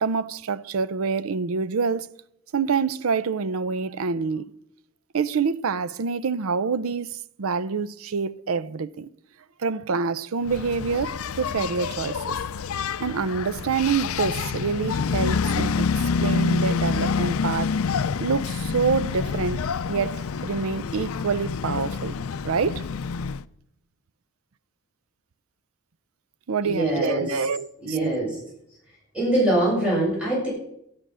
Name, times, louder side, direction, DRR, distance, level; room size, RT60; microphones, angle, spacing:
voice 1, 0.0-2.1 2.5-4.5 5.1-9.1 9.6-12.4 13.0-15.9 16.2-17.7 18.2-19.6 19.9-22.2 22.4-22.8 26.5-28.0, right 5 dB, 80° right, 0.5 m, -26 dB
Engine, 10.5-23.4, left 5 dB, 90° left, 0.5 m, -27 dB
voice 2, 26.6-27.4 27.8-28.4 29.1-30.5, right 1 dB, 5° right, 7.5 m, -23 dB
12.0 x 11.5 x 6.2 m
head